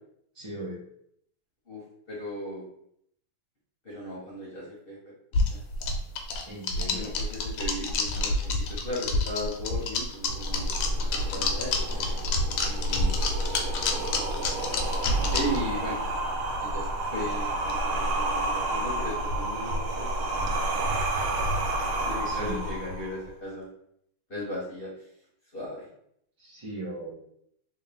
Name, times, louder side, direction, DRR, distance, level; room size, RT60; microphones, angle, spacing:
voice 1, 0.3-0.8 6.4-7.1 22.2-22.6 26.4-27.1, right 1 dB, 50° right, -6 dB, 0.3 m, -38 dB
voice 2, 2.1-2.7 3.8-5.0 5.5-5.6 6.9-10.7 11.1-11.8 12.6-13.1 14.9-16.0 16.6-21.4 22.0-23.7 24.3-24.9 25.5-25.8, equal, 40° left, -7 dB, 0.9 m, -37 dB
sound 1, 5.3-15.6, left 3 dB, 90° left, 1.5 m, -28 dB
sound 2, 10.3-23.3, right 1 dB, 80° right, 1.5 m, -30 dB
sound 3, 10.7-16.8, right 2 dB, 70° left, 1.3 m, -38 dB
3.6 x 2.7 x 3.4 m, 0.71 s
omnidirectional pair, 2.3 m